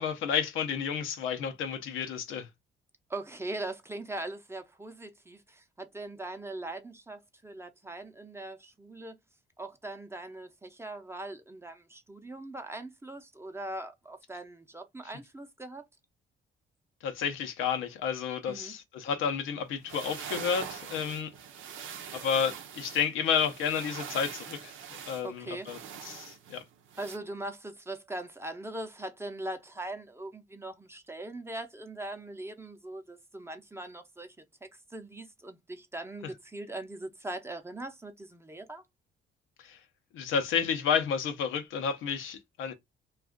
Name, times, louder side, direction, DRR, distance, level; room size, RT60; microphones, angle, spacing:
voice 1, 0.0-2.5 17.0-21.3 22.1-24.7 25.1-25.8 26.0-26.6 39.7-39.8 40.1-42.7, left 7 dB, 85° left, 0.7 m, -31 dB
voice 2, 3.1-9.2 9.6-15.8 18.5-18.7 25.2-26.0 27.0-34.4 34.6-38.8, right 2 dB, 10° right, 0.6 m, -41 dB
sound 1, 19.7-27.2, right 8 dB, 85° right, 0.6 m, -43 dB
2.4 x 2.3 x 3.5 m
cardioid pair, 90°, 20 cm